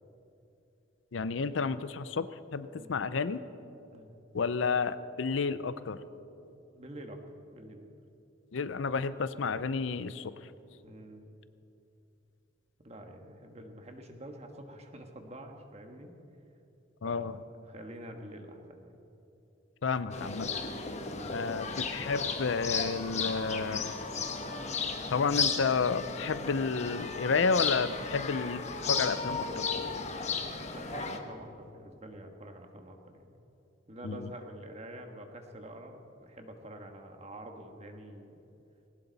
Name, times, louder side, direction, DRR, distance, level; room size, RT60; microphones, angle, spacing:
voice 1, 1.1-3.4 4.3-6.0 8.5-10.3 17.0-17.3 19.8-20.5 21.3-23.9 25.1-29.7 34.0-34.3, left 4 dB, 80° left, 14 dB, 0.5 m, -31 dB
voice 2, 6.4-7.2 7.5-7.8 10.8-11.4 12.8-16.1 17.0-17.3 17.7-19.0 21.0-21.5 30.7-33.3 33.9-38.4, right 1 dB, 35° right, 4 dB, 1.5 m, -47 dB
sound 1, 20.1-31.2, left 5 dB, 35° left, 1.1 m, -34 dB
19.5 x 18.0 x 4.1 m, 2.8 s
head